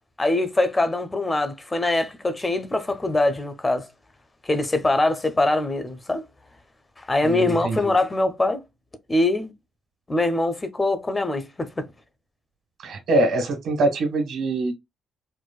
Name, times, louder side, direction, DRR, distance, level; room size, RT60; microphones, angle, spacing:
voice 1, 0.2-3.9 4.4-6.2 7.0-8.6 9.1-9.5 10.1-11.9, left 2 dB, 20° left, 0.6 m, -23 dB
voice 2, 7.2-7.8 12.8-14.7, right 2 dB, 75° right, 1.5 m, -23 dB
4.6 x 2.1 x 2.3 m
cardioid pair, 90°, 0 cm